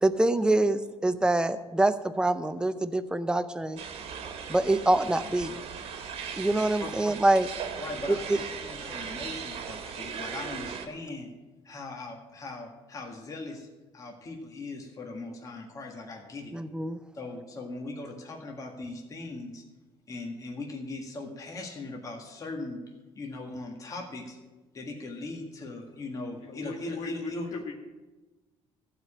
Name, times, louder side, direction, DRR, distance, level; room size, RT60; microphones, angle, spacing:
voice 1, 0.0-3.8 4.5-5.6 6.4-7.5 16.5-17.0, right 2 dB, 10° right, 11 dB, 0.6 m, -25 dB
sound 1, 3.8-10.9, right 6 dB, 70° right, 1.5 m, -38 dB
voice 2, 7.8-11.3 11.6-13.7 13.9-16.5 17.1-19.6 20.1-22.8 23.2-24.4 24.7-27.5, left 2 dB, 35° left, 1 dB, 1.8 m, -39 dB
voice 3, 26.4-27.7, left 4 dB, 80° left, 0 dB, 1.8 m, -39 dB
14.5 x 5.0 x 8.7 m, 1.2 s
cardioid pair, 135°, 11 cm